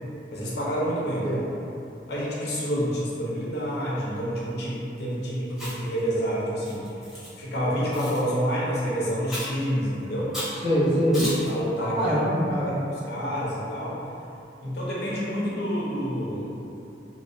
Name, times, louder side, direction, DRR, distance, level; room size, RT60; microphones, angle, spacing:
voice 1, 0.3-1.5 2.1-6.9 7.4-10.3 11.4-12.2 13.1-14.0 14.6-16.5, equal, 65° left, -6 dB, 0.5 m, -28 dB
Chewing mastication, 5.5-6.0 6.6-7.3 7.9-8.2 9.3-9.6 10.3-10.6 11.1-11.5, equal, 5° right, 0.7 m, -33 dB
voice 2, 10.6-11.3 11.9-12.8, equal, 35° right, -8 dB, 0.6 m, -23 dB
2.7 x 2.0 x 2.4 m, 2.7 s
head